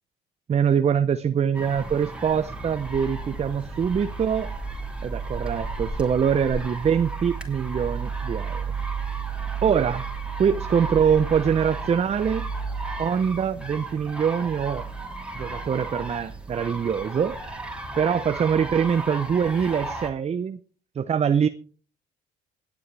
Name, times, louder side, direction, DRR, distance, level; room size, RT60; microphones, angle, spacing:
voice 1, 0.5-4.5 5.0-8.6 9.6-10.0 10.4-12.5 13.0-14.8 15.3-17.4 18.0-20.6 21.0-21.5, right 7 dB, 35° right, 0.7 m, -24 dB
sound 1, 1.5-20.1, right 3 dB, 5° right, 2.9 m, -33 dB
21.0 x 8.5 x 3.4 m
supercardioid pair, 65°, 18 cm